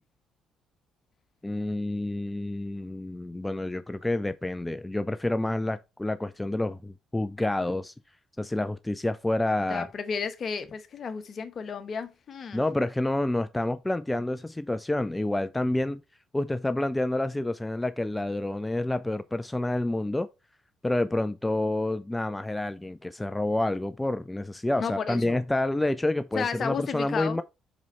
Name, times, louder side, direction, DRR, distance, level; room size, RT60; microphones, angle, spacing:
voice 1, 1.4-7.9 8.4-9.9 12.5-16.0 16.3-20.3 20.8-27.4, left 1 dB, 15° left, 0.4 m, -28 dB
voice 2, 9.7-12.6 24.8-25.4 26.3-27.4, left 6 dB, 50° left, 1.1 m, -33 dB
5.4 x 4.9 x 4.2 m
hypercardioid pair, 50°, 0 cm